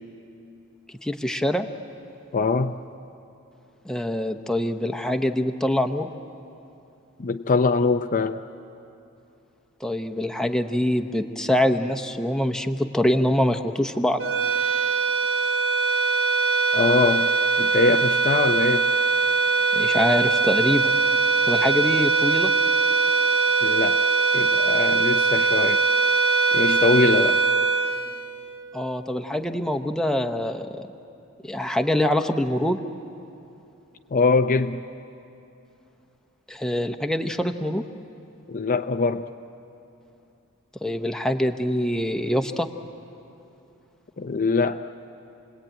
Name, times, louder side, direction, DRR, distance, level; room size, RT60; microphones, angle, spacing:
voice 1, 1.0-1.7 3.9-6.1 9.8-14.2 19.7-20.9 21.5-22.5 28.7-30.8 31.4-32.8 36.5-37.8 40.8-42.7, left 1 dB, 5° left, 6 dB, 0.9 m, -24 dB
voice 2, 2.3-2.8 7.2-8.4 16.7-17.3 17.6-18.9 23.6-24.1 24.3-25.8 26.5-27.4 34.1-34.8 38.5-39.3 44.2-44.8, left 4 dB, 40° left, 7 dB, 0.5 m, -22 dB
sound 1, 14.2-28.8, right 4 dB, 65° right, 1.1 m, -21 dB
28.5 x 20.5 x 8.9 m, 2.8 s
head